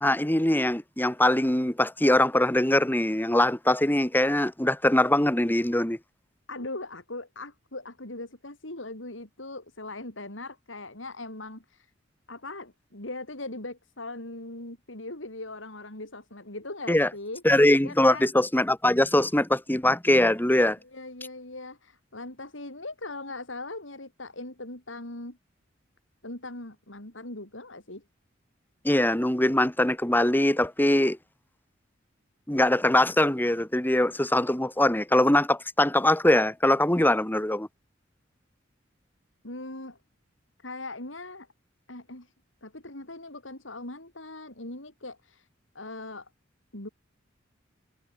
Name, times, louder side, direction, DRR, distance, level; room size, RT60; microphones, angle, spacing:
voice 1, 0.0-6.0 16.9-17.1 17.4-20.8 28.8-31.2 32.5-37.7, left 1 dB, 10° left, 1.7 m, -22 dB
voice 2, 6.5-11.9 12.3-17.4 17.8-18.3 20.9-25.4 26.2-28.0 39.4-40.0 40.6-41.5 41.9-42.3 42.6-45.5 45.8-46.3 46.7-46.9, left 2 dB, 75° left, 5.3 m, -40 dB
head